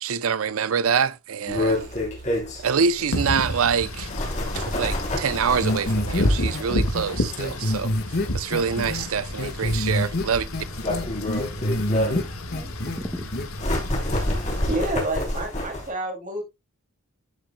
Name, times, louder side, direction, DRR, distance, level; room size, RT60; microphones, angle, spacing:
voice 1, 0.0-1.9 2.6-4.1 4.5-7.9 8.3-10.5, right 6 dB, 75° right, 0.6 m, -25 dB
sound 1, 1.5-15.9, left 1 dB, 35° left, 3.4 m, -30 dB
Wind / Rain, 3.1-14.8, left 1 dB, 80° left, 1.6 m, -31 dB
sound 2, 5.6-6.2 6.5-6.6 7.0-7.1 7.4-9.0 9.4-10.2 10.5-12.2 12.5-13.0 13.3-13.5, left 1 dB, 50° left, 1.3 m, -26 dB
voice 2, 11.4-13.5 14.0-15.8, equal, 10° left, 1.3 m, -40 dB
voice 3, 14.7-16.4, right 1 dB, 35° right, 2.7 m, -28 dB
11.0 x 7.8 x 2.2 m
head